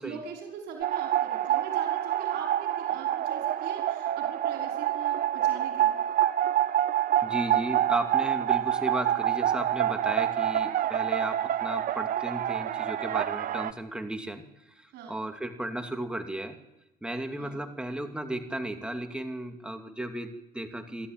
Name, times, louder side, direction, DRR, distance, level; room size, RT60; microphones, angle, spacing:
voice 1, 0.0-6.0 14.9-15.2 17.4-17.7, right 6 dB, 80° right, 1 dB, 5.5 m, -42 dB
sound 1, 0.8-13.7, right 12 dB, 55° right, 0.9 m, -27 dB
voice 2, 7.2-16.6 17.0-21.1, right 1 dB, 5° right, 5 dB, 2.5 m, -35 dB
27.5 x 12.5 x 9.2 m, 0.95 s
cardioid pair, 110°, 17 cm